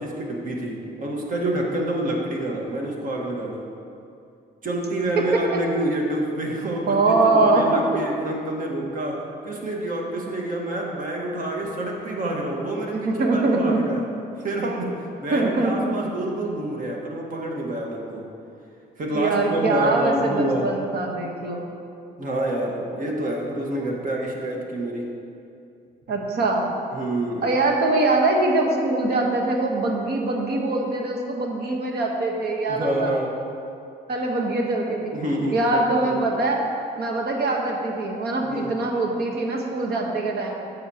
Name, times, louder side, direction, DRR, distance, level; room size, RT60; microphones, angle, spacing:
voice 1, 0.0-3.6 4.6-14.0 14.4-18.2 19.0-20.7 22.2-25.1 26.9-27.5 32.7-33.3 35.1-36.2 38.4-38.7, right 1 dB, 50° right, -1 dB, 1.4 m, -27 dB
voice 2, 6.9-7.8 12.9-13.8 15.3-15.9 19.1-21.7 26.1-26.6 27.4-33.1 34.1-35.1 35.5-36.6 37.0-40.6, right 2 dB, 65° right, 0 dB, 1.2 m, -23 dB
10.0 x 6.7 x 2.9 m, 2.5 s
cardioid pair, 100°, 17 cm